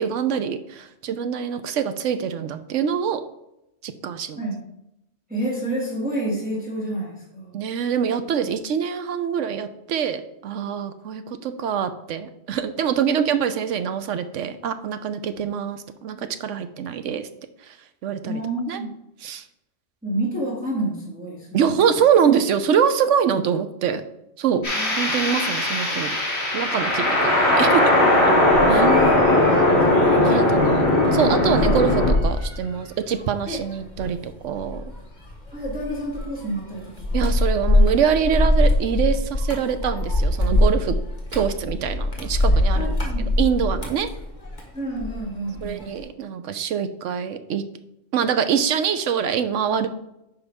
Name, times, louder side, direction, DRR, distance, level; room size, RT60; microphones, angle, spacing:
voice 1, 0.0-3.2 3.8-4.4 7.5-17.3 17.6-17.8 18.0-18.4 18.7-18.8 19.2-19.4 21.5-24.0 24.4-24.6 25.0-26.1 26.5-27.9 28.7-28.9 30.1-30.9 31.1-34.8 37.1-41.0 41.3-44.1 45.6-47.6 48.1-49.9, right 7 dB, 80° right, 10 dB, 1.0 m, -24 dB
voice 2, 5.3-7.6 18.3-18.9 20.0-21.5 24.7-24.9 28.6-30.4 33.5-33.6 35.5-37.3 42.7-43.3 44.7-45.9, right 1 dB, 5° right, -5 dB, 2.2 m, -29 dB
sound 1, 24.6-32.1, left 1 dB, 55° left, 3.3 m, -19 dB
sound 2, 28.5-45.2 45.6-46.0, left 1 dB, 40° left, 1.7 m, -24 dB
9.4 x 5.3 x 3.5 m, 0.85 s
omnidirectional pair, 1.3 m